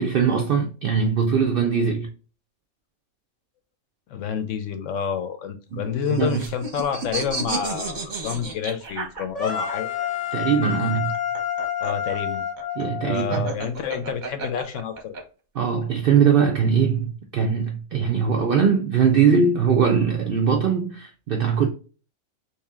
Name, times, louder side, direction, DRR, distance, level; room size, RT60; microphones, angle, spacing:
voice 1, 0.0-2.1 5.7-5.8 6.1-6.4 10.3-11.1 12.8-13.5 15.6-21.7, right 6 dB, 70° right, 0.5 m, -21 dB
voice 2, 4.1-9.9 10.9-11.0 11.8-12.4 13.0-15.1, left 7 dB, 70° left, 0.9 m, -29 dB
sound 1, 5.7-9.7 11.0-15.2, right 3 dB, 40° right, 0.8 m, -32 dB
sound 2, 9.3-13.4, left 9 dB, 35° left, 0.7 m, -28 dB
3.3 x 2.8 x 3.5 m
omnidirectional pair, 1.5 m